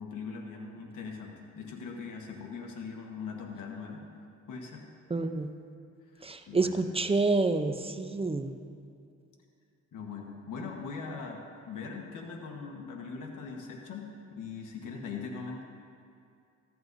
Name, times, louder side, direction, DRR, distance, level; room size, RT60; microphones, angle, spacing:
voice 1, 0.0-4.1 4.5-4.8 6.1-6.8 9.9-15.6, left 5 dB, 75° left, 1 dB, 1.4 m, -41 dB
voice 2, 5.1-5.5 6.2-8.6, right 3 dB, 20° right, 8 dB, 0.7 m, -28 dB
14.5 x 11.0 x 2.7 m, 2.4 s
cardioid pair, 70°, 32 cm